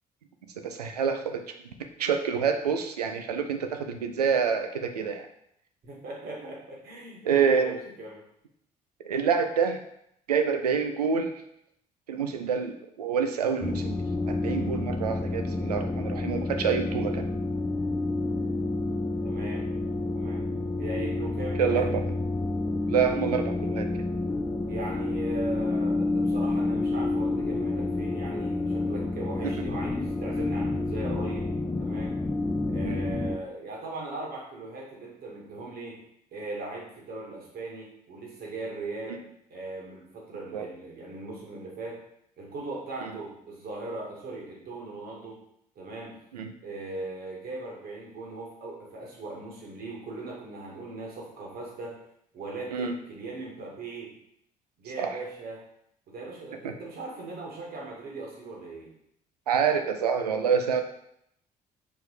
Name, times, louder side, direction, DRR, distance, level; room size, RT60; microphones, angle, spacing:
voice 1, 0.6-1.7 2.0-5.3 7.2-7.7 9.0-9.8 10.3-11.3 12.1-14.0 14.3-17.3 21.6-22.0 22.9-23.9 29.4-29.5 32.8-33.1 39.1-39.2 40.5-40.7 43.0-43.1 46.3-46.5 52.7-52.9 55.0-55.2 56.6-56.7 59.5-60.8, right 6 dB, 80° right, 6 dB, 0.6 m, -27 dB
voice 2, 5.8-8.2 19.2-19.7 20.1-20.5 20.8-21.9 24.7-31.5 31.8-32.2 32.7-36.0 36.3-39.2 39.5-42.0 42.4-45.4 45.8-46.1 46.6-51.9 52.3-54.1 54.8-55.6 56.1-58.9, right 2 dB, 50° right, -2 dB, 2.1 m, -39 dB
sound 1, 13.6-33.4, left 2 dB, 15° left, 0.4 m, -29 dB
4.8 x 4.6 x 4.8 m, 0.75 s
figure-of-eight pair, 50°, 20 cm